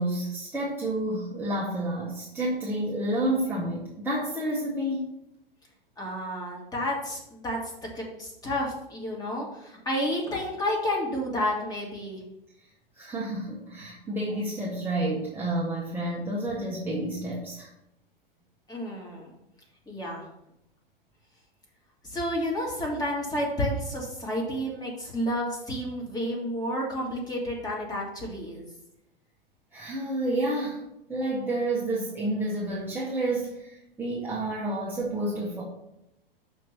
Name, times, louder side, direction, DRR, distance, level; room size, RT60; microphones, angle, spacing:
voice 1, 0.0-5.1 13.0-17.7 29.7-35.6, right 1 dB, 5° right, -6 dB, 1.2 m, -30 dB
voice 2, 6.0-12.2 18.7-19.3 19.9-20.3 22.0-28.7, equal, 15° left, -2 dB, 2.1 m, -31 dB
6.1 x 4.6 x 5.6 m, 0.85 s
figure-of-eight pair, 100°, 29 cm